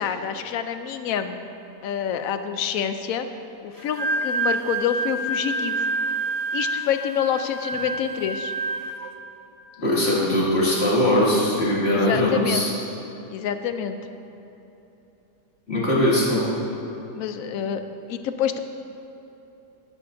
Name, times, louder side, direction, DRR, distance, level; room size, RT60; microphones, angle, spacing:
voice 1, 0.0-1.4 1.8-3.3 3.6-5.9 6.5-8.5 11.9-12.7 13.3-14.0 17.2-17.8 18.1-18.6, left 8 dB, 70° left, 9 dB, 1.0 m, -27 dB
Wind instrument woodwind instrument, 3.8-9.1, right 3 dB, 90° right, 1.4 m, -28 dB
voice 2, 9.8-12.7 15.7-16.4, left 1 dB, 40° left, -6 dB, 2.5 m, -20 dB
13.0 x 12.0 x 2.7 m, 3.0 s
omnidirectional pair, 1.7 m